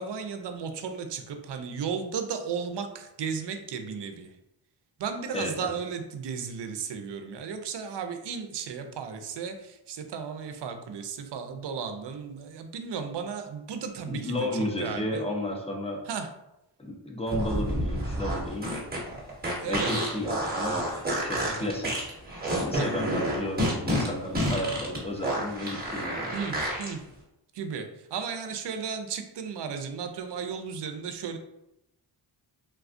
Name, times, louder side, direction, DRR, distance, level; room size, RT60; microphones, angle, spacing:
voice 1, 0.0-4.4 5.0-15.3 16.1-16.3 19.6-19.9 21.4-21.7 22.8-22.9 26.3-27.0 27.5-31.4, right 6 dB, 65° right, 6 dB, 0.5 m, -35 dB
voice 2, 5.3-5.7 14.1-16.0 16.8-18.7 19.6-20.9 21.2-22.0 22.5-26.3, left 1 dB, 15° left, 0 dB, 0.6 m, -33 dB
sound 1, 17.3-26.9, equal, 20° right, 1.1 m, -29 dB
3.4 x 2.3 x 2.5 m, 0.87 s
cardioid pair, 70°, 46 cm